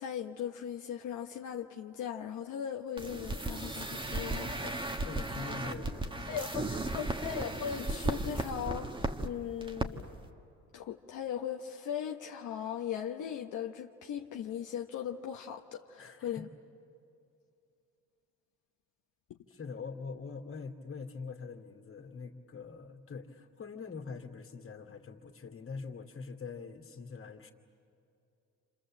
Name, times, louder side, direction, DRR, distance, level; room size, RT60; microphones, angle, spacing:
voice 1, 0.0-4.8 6.3-6.7 6.9-10.1 10.7-16.5 19.3-19.4, left 9 dB, 80° left, 2 dB, 1.0 m, -38 dB
sound 1, 3.0-9.3 9.6-9.9 10.1-10.3, right 2 dB, 15° right, 1.5 m, -35 dB
voice 2, 5.0-7.1 16.0-16.5 19.5-27.5, left 5 dB, 45° left, 3 dB, 2.5 m, -44 dB
29.0 x 26.5 x 7.6 m, 2.6 s
cardioid pair, 90°, 30 cm